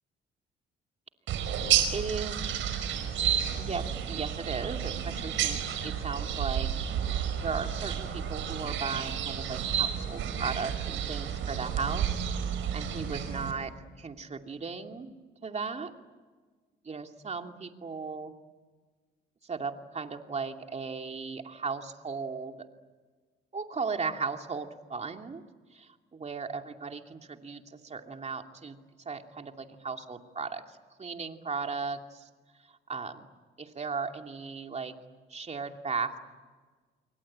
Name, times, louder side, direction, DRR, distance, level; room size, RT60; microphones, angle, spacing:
sound 1, 1.3-13.5, right 9 dB, 80° right, 4.9 m, -31 dB
voice 1, 1.9-2.6 3.6-6.7 7.4-12.2 12.7-15.1 15.4-15.9 16.8-18.3 19.4-22.6 23.5-25.4 25.7-28.8 29.0-32.3 32.7-33.3 33.6-34.9 35.3-36.2, right 5 dB, 35° right, 4 dB, 2.7 m, -36 dB
28.5 x 23.5 x 8.8 m, 1.4 s
cardioid pair, 90°, 20 cm